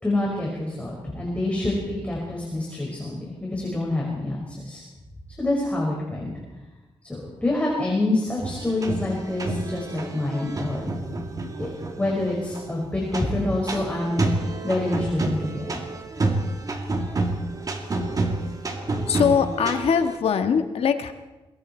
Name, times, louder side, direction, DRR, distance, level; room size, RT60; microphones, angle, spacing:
voice 1, 0.0-4.8 5.4-6.3 7.1-10.9 11.6-11.7 12.0-15.8, left 2 dB, 15° left, -3 dB, 5.5 m, -27 dB
sound 1, 8.4-20.2, right 2 dB, 35° right, 2.6 m, -29 dB
voice 2, 19.1-21.1, left 7 dB, 80° left, 8 dB, 1.7 m, -22 dB
26.5 x 22.0 x 4.5 m, 1.1 s
wide cardioid pair, 125°, 10 cm